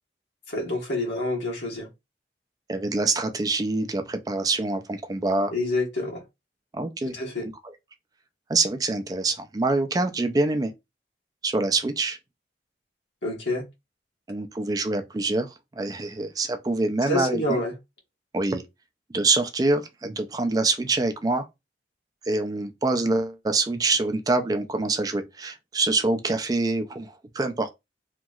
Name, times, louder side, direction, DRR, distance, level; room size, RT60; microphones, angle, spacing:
voice 1, 0.5-1.9 5.5-6.2 7.1-7.5 13.2-13.7 17.0-17.7, left 2 dB, 85° left, 1.3 m, -27 dB
voice 2, 2.7-5.5 6.7-7.1 8.5-10.7 11.4-12.2 14.3-17.6 18.3-18.6 19.1-21.5 22.3-27.7, right 3 dB, 20° right, 0.3 m, -25 dB
2.9 x 2.6 x 2.3 m
head